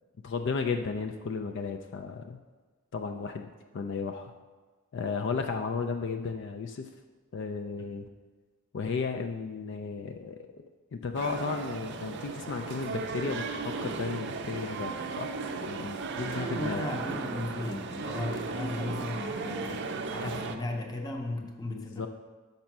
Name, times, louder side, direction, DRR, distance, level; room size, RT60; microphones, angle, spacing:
voice 1, 0.2-2.4 2.9-4.3 4.9-6.9 7.3-8.1 8.7-10.6 10.9-15.3 15.7-16.9 21.7-22.1, left 5 dB, 55° left, 6 dB, 0.4 m, -34 dB
sound 1, 11.1-20.6, right 4 dB, 55° right, 0.5 m, -36 dB
voice 2, 16.2-22.1, left 2 dB, 20° left, 3 dB, 0.6 m, -36 dB
5.4 x 5.1 x 5.9 m, 1.4 s
head